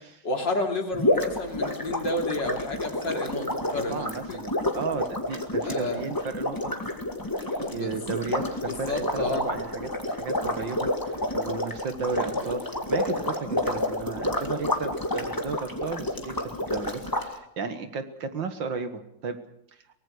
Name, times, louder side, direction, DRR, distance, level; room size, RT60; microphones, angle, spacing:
voice 1, 0.2-4.4 5.6-6.1 7.6-8.2 8.7-9.5, left 2 dB, 55° left, 3 dB, 3.5 m, -31 dB
sound 1, 0.9-17.3, left 1 dB, 10° left, 1.9 m, -29 dB
voice 2, 3.9-6.7 7.5-19.4, right 5 dB, 60° right, 9 dB, 2.2 m, -34 dB
23.5 x 19.0 x 6.4 m, 0.74 s
omnidirectional pair, 2.3 m